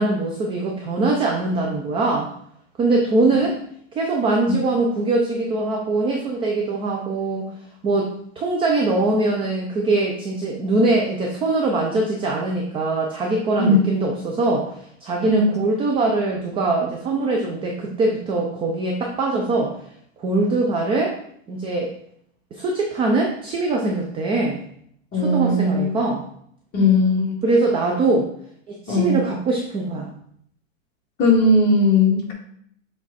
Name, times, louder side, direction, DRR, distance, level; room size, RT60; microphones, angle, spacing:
voice 1, 0.0-2.3 2.8-3.6 3.9-7.5 7.8-19.7 20.2-21.2 21.5-21.9 22.5-24.6 25.2-26.2 27.4-28.3 28.7-30.1, right 2 dB, 15° right, 0 dB, 0.5 m, -22 dB
voice 2, 15.3-15.6 25.1-25.9 26.7-27.4 28.9-29.2 31.2-32.3, left 2 dB, 25° left, -4 dB, 2.5 m, -18 dB
7.3 x 3.5 x 4.1 m, 0.66 s
supercardioid pair, 145°, 39 cm